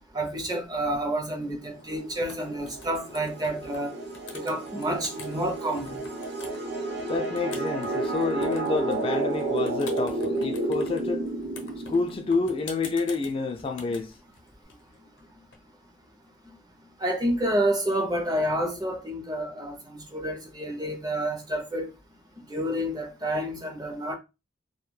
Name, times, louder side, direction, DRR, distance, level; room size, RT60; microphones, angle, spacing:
voice 1, 0.1-3.9 4.3-6.0 16.5-16.6 17.0-21.9 22.5-24.1, right 1 dB, 20° right, 0.5 m, -29 dB
sound 1, 1.6-1.8 2.1-3.8 4.1-5.4 5.8-15.6, left 5 dB, 85° left, 0.7 m, -46 dB
sound 2, 2.0-12.5, right 2 dB, 60° right, 0.7 m, -31 dB
voice 2, 7.1-11.2 11.9-14.1, left 4 dB, 30° left, 0.3 m, -28 dB
2.2 x 2.2 x 3.0 m
head